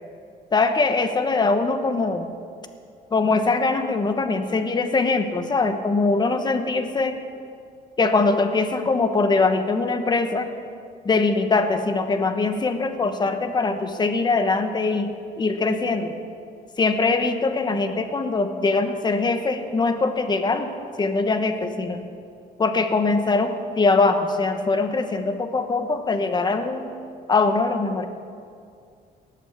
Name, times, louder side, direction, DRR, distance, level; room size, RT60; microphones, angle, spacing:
voice 1, 0.5-2.3 3.1-7.2 8.0-10.5 11.0-16.1 16.8-20.7 21.0-22.0 22.6-26.9 27.3-28.1, left 3 dB, 25° left, 8 dB, 1.2 m, -22 dB
19.0 x 8.2 x 7.2 m, 2.4 s
cardioid pair, 110°, 17 cm